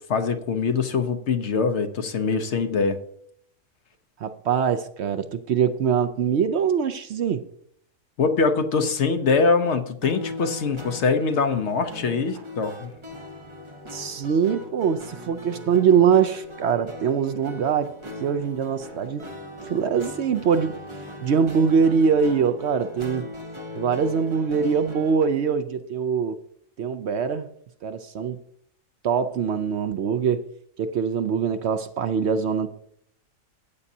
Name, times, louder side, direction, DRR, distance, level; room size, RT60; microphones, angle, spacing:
voice 1, 0.1-3.0 8.2-12.9, left 4 dB, 60° left, 8 dB, 1.0 m, -23 dB
voice 2, 4.2-7.4 13.9-17.9 18.2-19.2 19.6-20.7 21.2-23.3 23.7-26.4 26.8-27.5 27.8-28.4 29.0-30.4 30.8-32.7, right 6 dB, 65° right, 10 dB, 0.8 m, -23 dB
sound 1, 10.0-25.3, left 1 dB, 20° right, 1.2 m, -39 dB
15.0 x 8.4 x 2.7 m, 0.69 s
omnidirectional pair, 1.4 m